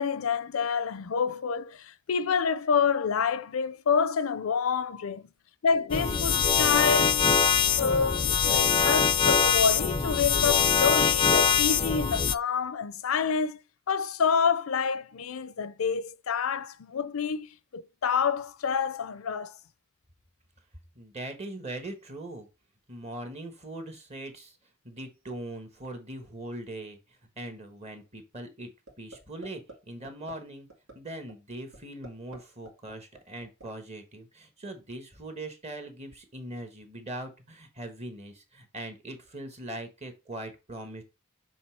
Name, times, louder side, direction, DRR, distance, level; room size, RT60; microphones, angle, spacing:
voice 1, 0.0-5.2 5.6-7.5 7.8-13.6 13.9-19.6, left 6 dB, 90° left, 0.5 m, -28 dB
sound 1, 5.9-12.3, left 7 dB, 25° left, 0.4 m, -23 dB
voice 2, 20.9-22.5 22.9-24.6 24.8-28.7 29.0-30.7 30.9-41.0, right 1 dB, 30° right, 1.3 m, -41 dB
sound 2, 28.9-29.2 29.4-29.7 30.0-30.3 30.7-30.9 31.3-31.4 31.7-32.4 32.6-33.6, right 2 dB, 85° right, 2.2 m, -46 dB
7.1 x 3.4 x 4.5 m
head